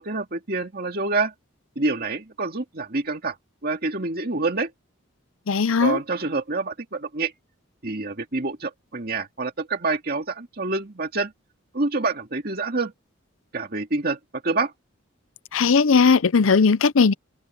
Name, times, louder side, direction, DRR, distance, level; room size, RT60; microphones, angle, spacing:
voice 1, 0.0-1.3 1.8-3.4 3.6-4.7 5.8-7.3 7.8-11.3 11.7-12.9 13.5-14.2 14.4-14.7, right 3 dB, 45° right, 2.3 m, -27 dB
voice 2, 5.5-6.0 15.5-17.1, left 5 dB, 75° left, 0.6 m, -18 dB
head